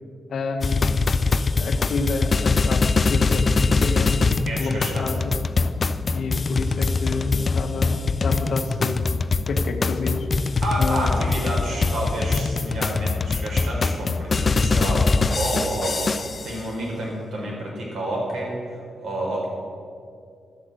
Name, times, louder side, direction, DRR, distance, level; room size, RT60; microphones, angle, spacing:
voice 1, 0.3-1.0 1.5-5.4 6.1-9.2 9.5-10.3 10.8-11.2, left 3 dB, 60° left, 6 dB, 1.0 m, -29 dB
sound 1, 0.6-16.5, left 4 dB, 30° left, 0.4 m, -23 dB
voice 2, 4.5-5.1 10.6-19.5, right 1 dB, 70° right, -2 dB, 3.9 m, -29 dB
12.0 x 8.1 x 7.7 m, 2.4 s
wide cardioid pair, 155°, 0 cm